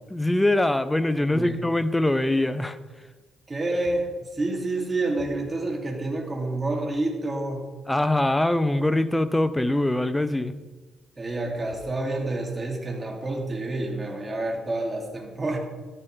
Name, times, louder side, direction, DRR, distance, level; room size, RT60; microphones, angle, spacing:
voice 1, 0.1-2.8 7.9-10.5, left 1 dB, 10° left, 12 dB, 0.7 m, -23 dB
voice 2, 1.2-1.6 3.5-7.7 11.2-15.6, right 2 dB, 25° right, -1 dB, 2.5 m, -28 dB
12.5 x 11.0 x 3.3 m, 1.3 s
cardioid pair, 90°, 0 cm